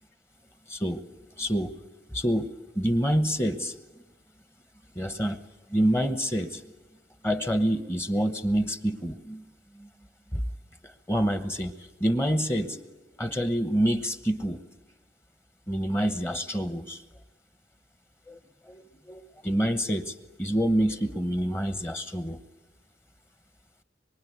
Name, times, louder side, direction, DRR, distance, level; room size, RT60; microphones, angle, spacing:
voice 1, 0.7-1.0 1.4-1.8 2.1-3.8 4.9-5.4 5.7-6.6 7.2-9.4 9.7-9.9 10.3-10.4 10.8-12.8 13.2-14.6 15.7-17.0 18.3-18.4 18.6-22.4, equal, 15° left, 10 dB, 1.0 m, -27 dB
25.0 x 23.0 x 9.5 m, 1.1 s
head